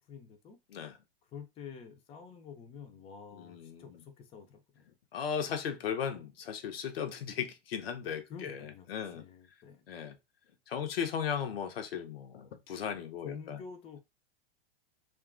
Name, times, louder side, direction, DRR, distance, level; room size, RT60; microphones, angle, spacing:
voice 1, 0.1-0.6 1.3-4.6 8.3-9.8 13.2-14.0, left 6 dB, 20° left, 0.4 m, -48 dB
voice 2, 3.3-4.0 5.1-9.2 9.9-10.2 10.7-13.6, left 7 dB, 75° left, 0.7 m, -36 dB
2.8 x 2.3 x 2.4 m
hypercardioid pair, 105°, 30 cm